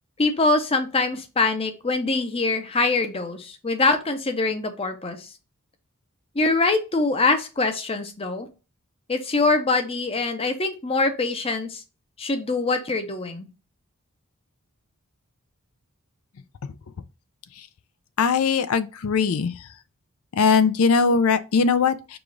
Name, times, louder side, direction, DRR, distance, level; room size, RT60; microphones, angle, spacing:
voice 1, 0.2-5.3 6.4-8.5 9.1-11.8 12.2-13.5, left 3 dB, 25° left, 0.6 m, -24 dB
voice 2, 18.2-19.5 20.4-22.2, left 5 dB, 70° left, 0.4 m, -20 dB
4.9 x 2.4 x 3.8 m
head